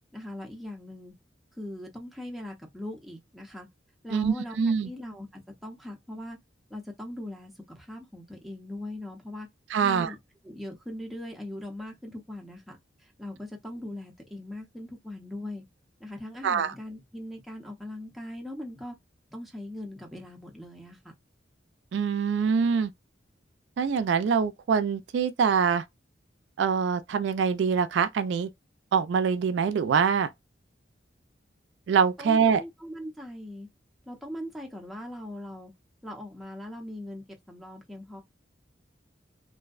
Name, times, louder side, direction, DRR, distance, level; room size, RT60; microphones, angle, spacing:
voice 1, 0.1-1.1 1.6-3.7 4.0-4.6 4.8-6.4 6.7-9.5 9.8-10.2 10.4-12.8 13.0-15.6 16.0-19.0 19.3-21.0 32.2-33.7 34.1-35.7 36.0-38.2, left 1 dB, ahead, 0.6 m, -40 dB
voice 2, 4.1-4.9 9.7-10.1 16.4-16.7 21.9-22.9 23.8-25.8 26.6-28.5 28.9-30.3 31.9-32.6, right 6 dB, 70° right, 0.3 m, -24 dB
2.6 x 2.0 x 2.3 m
head